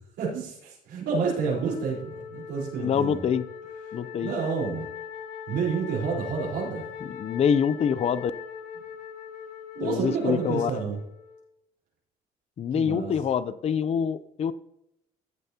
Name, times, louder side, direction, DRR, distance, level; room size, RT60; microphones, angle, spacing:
voice 1, 0.2-3.3 4.2-4.9 5.5-6.9 9.7-11.0 12.7-13.1, right 5 dB, 85° right, -5 dB, 4.2 m, -29 dB
Wind instrument woodwind instrument, 1.1-11.5, left 7 dB, 75° left, 2.9 m, -41 dB
voice 2, 2.8-3.4 3.9-4.3 7.1-8.3 9.8-10.7 12.6-14.5, left 7 dB, 40° left, 15 dB, 0.5 m, -25 dB
14.5 x 7.8 x 2.9 m, 0.79 s
cardioid pair, 110°, 17 cm